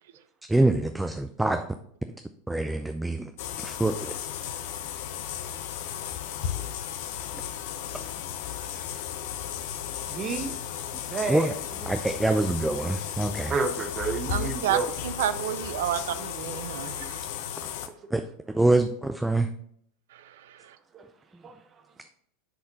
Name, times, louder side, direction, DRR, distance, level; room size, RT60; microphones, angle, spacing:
voice 1, 0.5-1.7 2.5-3.3 3.6-4.1 10.9-11.0 11.3-11.5 11.9-13.5 18.1-18.2 18.5-19.5, right 2 dB, 5° right, 0.5 m, -25 dB
sound 1, 3.4-17.9, left 10 dB, 60° left, 0.7 m, -35 dB
voice 2, 10.1-10.6 11.1-11.5 13.5-14.9 17.7-17.8 20.9-21.0 21.4-21.5, right 4 dB, 30° right, 0.8 m, -30 dB
voice 3, 14.3-17.2, right 11 dB, 65° right, 0.4 m, -30 dB
9.8 x 4.3 x 4.0 m
figure-of-eight pair, 85°, 0 cm